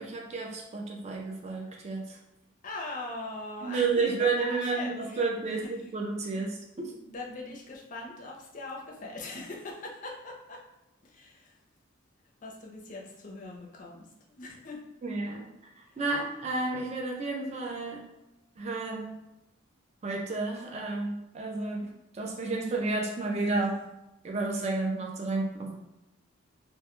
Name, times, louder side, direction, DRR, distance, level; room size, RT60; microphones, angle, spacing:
voice 1, 0.0-2.2 3.6-6.9 15.0-15.5 15.8-18.0 18.6-19.2 20.0-23.8 24.2-25.7, right 3 dB, 35° right, 0 dB, 0.4 m, -31 dB
voice 2, 2.6-5.7 6.4-6.5 7.0-10.6 11.0-11.6 12.4-14.8 15.9-16.0, left 2 dB, 40° left, -1 dB, 0.5 m, -41 dB
2.1 x 2.1 x 2.9 m, 0.91 s
head